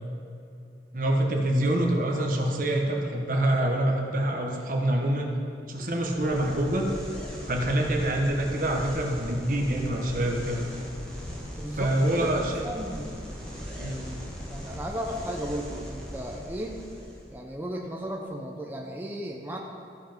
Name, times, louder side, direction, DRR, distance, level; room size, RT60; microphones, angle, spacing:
voice 1, 0.9-5.3 5.7-6.9 7.5-10.6 11.8-12.6 13.8-14.0, right 1 dB, 50° right, 1 dB, 1.2 m, -26 dB
sound 1, 5.9-17.3, equal, 5° left, 1.8 m, -39 dB
voice 2, 11.6-13.4 13.8-14.0 14.5-16.8 17.3-19.6, equal, 10° right, 0 dB, 0.6 m, -35 dB
14.0 x 5.8 x 5.2 m, 2.7 s
head